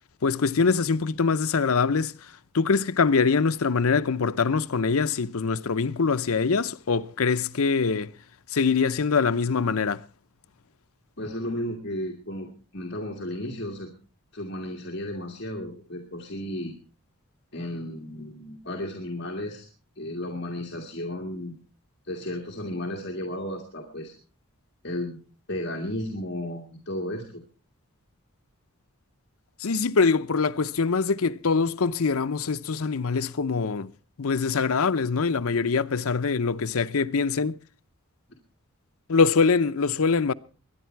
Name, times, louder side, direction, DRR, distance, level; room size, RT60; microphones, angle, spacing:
voice 1, 0.2-2.1 2.5-8.1 8.5-10.0 29.6-33.9 34.2-37.6 39.1-40.3, left 5 dB, 75° left, 0.7 m, -23 dB
voice 2, 11.2-12.5 12.7-13.9 14.3-16.7 17.5-19.7 20.0-21.6 22.0-24.1 24.8-25.2 25.5-27.4, left 1 dB, 50° left, 2.2 m, -33 dB
22.0 x 10.5 x 4.6 m
head